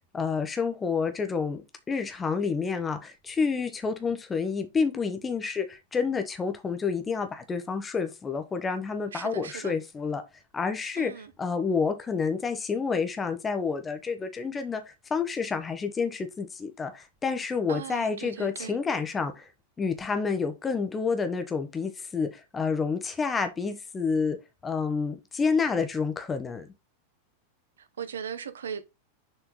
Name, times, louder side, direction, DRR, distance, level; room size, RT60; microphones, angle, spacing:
voice 1, 0.1-10.2 10.5-14.8 15.1-19.4 19.8-24.4 24.6-26.7, left 5 dB, 15° left, 1.3 m, -29 dB
voice 2, 9.1-9.7 11.0-11.3 17.7-18.8 28.0-28.8, right 7 dB, 65° right, 0.8 m, -38 dB
6.7 x 4.4 x 3.8 m
figure-of-eight pair, 90°, 0 cm